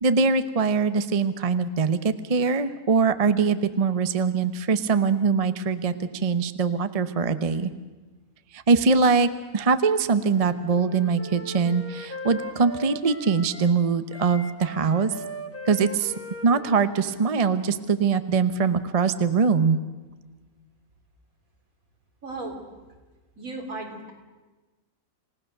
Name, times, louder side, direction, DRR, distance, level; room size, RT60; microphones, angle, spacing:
voice 1, 0.0-7.7 8.5-15.1 15.7-16.1 16.4-19.8, right 5 dB, 35° right, 11 dB, 0.7 m, -22 dB
Wind instrument woodwind instrument, 10.2-13.8 14.1-17.9, equal, 10° left, 1.3 m, -39 dB
voice 2, 22.2-22.6 23.4-24.1, right 2 dB, 75° right, 2 dB, 4.0 m, -35 dB
28.0 x 17.5 x 6.6 m, 1.2 s
omnidirectional pair, 1.5 m